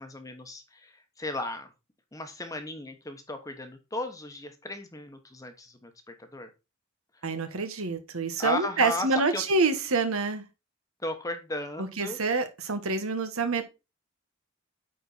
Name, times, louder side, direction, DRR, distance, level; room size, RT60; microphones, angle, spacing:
voice 1, 0.0-1.7 2.1-6.5 8.4-9.1 9.3-9.4 11.0-12.2, left 2 dB, 15° left, 1.0 m, -36 dB
voice 2, 7.2-10.4 11.8-13.6, right 3 dB, 85° right, 1.3 m, -27 dB
9.1 x 4.3 x 4.0 m
head